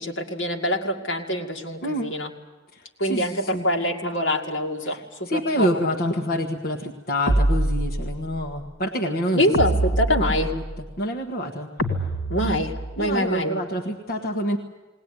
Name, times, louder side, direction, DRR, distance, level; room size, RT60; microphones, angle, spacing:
voice 1, 0.0-2.3 3.0-5.7 9.3-10.5 12.3-13.6, equal, 65° left, 2 dB, 2.3 m, -25 dB
voice 2, 1.8-2.1 2.7-3.6 4.8-9.4 10.2-11.7 13.0-14.6, equal, 50° left, 1 dB, 1.4 m, -27 dB
sound 1, 7.3-8.3 9.5-10.8 11.8-13.1, right 1 dB, 85° left, 2.3 m, -24 dB
20.0 x 19.0 x 9.8 m, 1.3 s
head